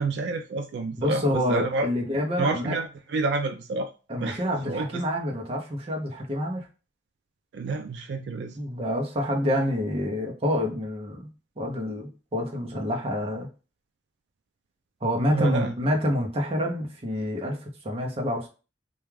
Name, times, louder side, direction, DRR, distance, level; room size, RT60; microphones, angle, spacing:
voice 1, 0.0-1.9 2.4-3.9 4.2-5.0 7.5-8.6 15.3-15.7, right 3 dB, 75° right, 6 dB, 0.3 m, -29 dB
voice 2, 1.0-2.8 4.1-6.7 8.5-11.3 11.6-13.5 15.0-18.5, equal, 35° right, 0 dB, 0.6 m, -27 dB
2.3 x 2.3 x 3.1 m, 0.33 s
head